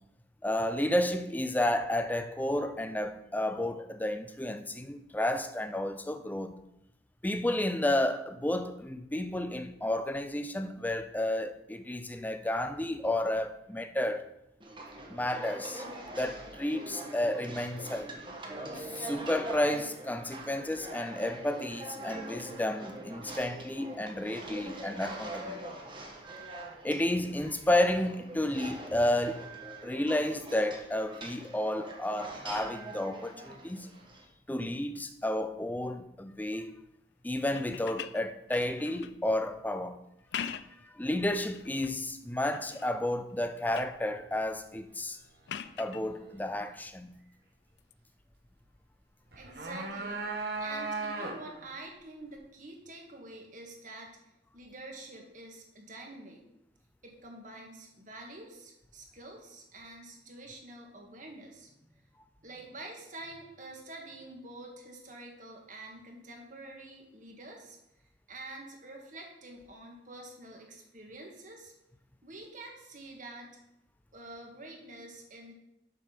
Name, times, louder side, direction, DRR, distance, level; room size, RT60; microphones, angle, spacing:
voice 1, 0.4-6.6 7.2-14.3 15.1-15.8 16.2-18.1 18.7-25.6 26.8-29.5 29.8-33.9 34.5-36.8 37.2-40.0 40.9-45.2 45.8-47.1, left 1 dB, 10° left, 0.4 m, -31 dB
sound 1, 14.6-34.3, right 1 dB, 30° right, 1.3 m, -43 dB
sound 2, 37.5-39.2 40.1-40.9 41.4-42.0 42.5-43.0 43.3-44.0 45.5-46.0 47.8-47.9, left 8 dB, 70° left, 0.4 m, -42 dB
sound 3, 49.3-51.6, right 3 dB, 60° right, 1.3 m, -36 dB
voice 2, 49.4-50.3 50.6-54.1 54.5-56.4 57.0-62.0 62.4-67.8 68.3-71.7 72.2-73.5 74.1-75.5, right 2 dB, 45° right, 1.7 m, -47 dB
7.3 x 5.3 x 5.8 m
head